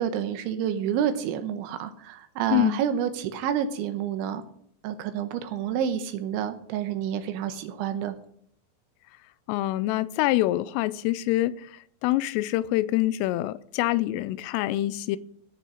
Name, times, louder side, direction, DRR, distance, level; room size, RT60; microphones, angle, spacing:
voice 1, 0.0-4.4 4.8-8.2, right 9 dB, 80° right, 3.1 m, -29 dB
voice 2, 9.5-11.6 12.0-15.2, left 16 dB, 85° left, 3.2 m, -25 dB
15.0 x 6.8 x 6.2 m
omnidirectional pair, 5.7 m